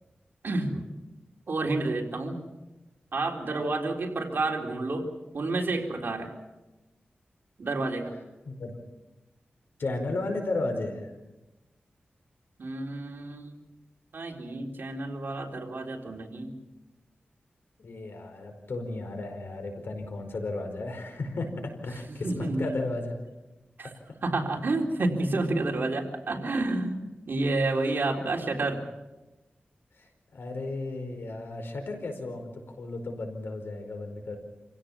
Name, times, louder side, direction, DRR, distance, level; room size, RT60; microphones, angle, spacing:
voice 1, 0.4-0.8 1.5-2.5 3.1-5.1 5.3-6.3 7.6-8.1 12.6-13.6 14.1-16.5 22.1-22.7 23.8-23.9 24.2-28.8, right 2 dB, 65° right, 1 dB, 3.8 m, -30 dB
voice 2, 8.4-8.8 9.8-11.1 17.8-23.2 30.0-34.4, left 2 dB, 75° left, 5 dB, 4.8 m, -34 dB
27.5 x 16.5 x 7.4 m, 1.1 s
wide cardioid pair, 75°, 4 cm